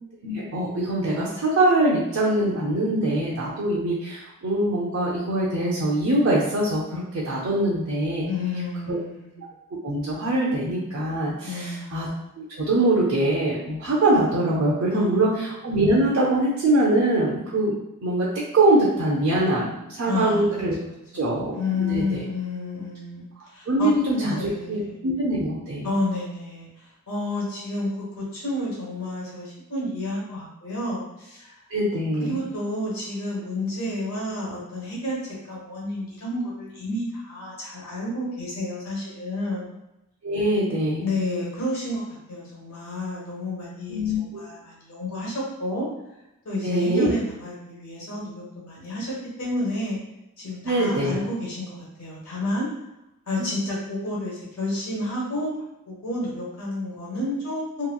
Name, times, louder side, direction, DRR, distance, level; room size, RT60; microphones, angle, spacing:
voice 1, 0.2-8.3 8.9-9.0 9.4-9.5 9.8-12.1 12.4-17.7 18.0-18.3 18.5-20.8 21.1-22.2 23.7-24.4 24.7-25.9 31.7-32.4 40.2-41.1 43.9-44.4 46.6-47.1 50.6-51.2 53.4-53.5, right 1 dB, 65° right, -5 dB, 0.5 m, -23 dB
voice 2, 8.2-9.5 11.4-12.0 14.9-15.4 20.1-20.4 21.1-25.0 25.8-26.7 27.1-27.9 28.2-31.6 32.3-35.2 35.5-39.7 41.0-42.0 42.3-45.3 45.6-45.9 46.4-49.1 49.4-50.0 50.4-52.7 53.3-55.5 55.9-57.9, left 2 dB, 70° left, -5 dB, 1.2 m, -30 dB
2.9 x 2.7 x 2.2 m, 0.91 s
head